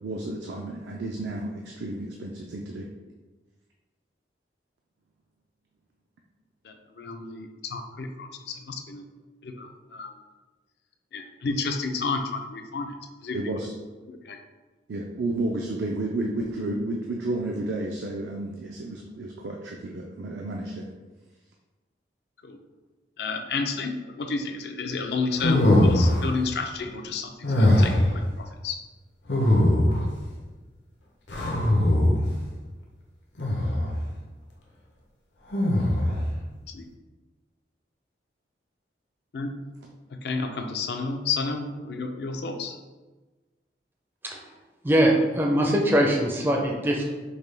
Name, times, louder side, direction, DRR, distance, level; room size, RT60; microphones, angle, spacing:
voice 1, 0.0-2.9 13.3-13.7 14.9-20.9, right 2 dB, 75° right, 0 dB, 0.4 m, -31 dB
voice 2, 6.6-9.0 9.4-10.1 11.1-13.0 13.2-13.6 14.1-14.4 22.4-22.6 23.2-28.8 36.7-36.9 39.3-39.5 40.1-42.8, left 4 dB, 60° left, 5 dB, 0.4 m, -31 dB
sound 1, 25.4-26.3 27.4-28.1 29.3-30.1 31.3-32.3 33.4-33.9 35.5-36.2, left 1 dB, 80° left, 0.8 m, -21 dB
voice 3, 44.8-47.1, right 1 dB, 10° right, 0 dB, 0.4 m, -22 dB
5.2 x 2.2 x 3.2 m, 1.2 s
head